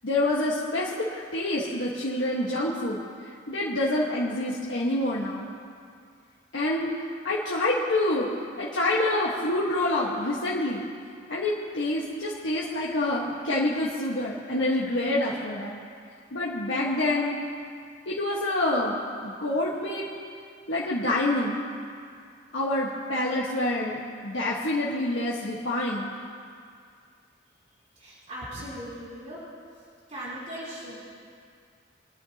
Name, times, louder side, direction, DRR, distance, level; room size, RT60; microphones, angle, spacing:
voice 1, 0.0-3.0 3.5-5.5 6.5-6.9 7.2-8.3 8.6-10.8 11.3-15.8 16.3-17.4 18.1-20.1 20.7-21.6 22.5-26.1, left 1 dB, 80° left, -7 dB, 1.5 m, -27 dB
voice 2, 27.7-29.4 29.7-29.8 30.1-31.0, equal, 40° right, -9 dB, 3.6 m, -39 dB
24.0 x 10.0 x 2.9 m, 2.2 s
head